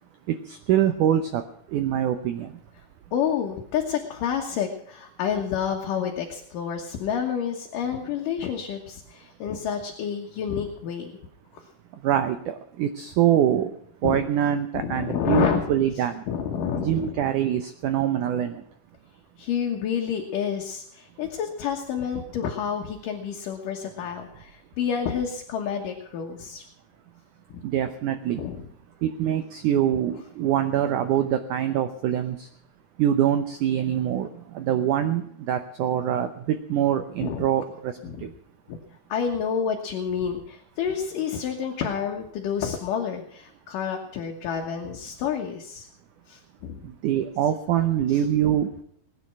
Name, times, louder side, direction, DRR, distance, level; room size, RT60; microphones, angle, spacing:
voice 1, 0.3-1.4 1.7-2.5 12.0-13.7 14.0-16.2 16.8-18.6 27.6-28.5 29.0-32.5 33.0-38.3 46.8-48.7, right 10 dB, 80° right, 9 dB, 1.8 m, -24 dB
voice 2, 3.1-11.1 14.0-14.2 14.7-15.6 16.3-17.1 19.4-26.6 27.5-27.6 28.4-28.6 37.2-37.5 38.0-38.3 38.7-38.8 39.1-45.9 46.3-46.8 48.1-48.2, left 7 dB, 65° left, 1 dB, 2.6 m, -29 dB
20.0 x 9.8 x 6.0 m, 0.68 s
omnidirectional pair, 4.6 m